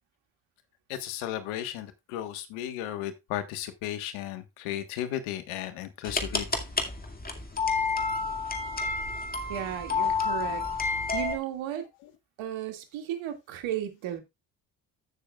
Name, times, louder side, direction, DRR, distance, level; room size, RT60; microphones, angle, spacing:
voice 1, 0.9-6.5, left 12 dB, 80° left, 1.5 m, -35 dB
sound 1, 6.0-11.4, left 4 dB, 20° left, 2.3 m, -30 dB
voice 2, 9.5-10.7 11.1-11.9 12.4-14.2, right 11 dB, 70° right, 2.4 m, -34 dB
15.0 x 6.7 x 2.4 m
supercardioid pair, 70°, 48 cm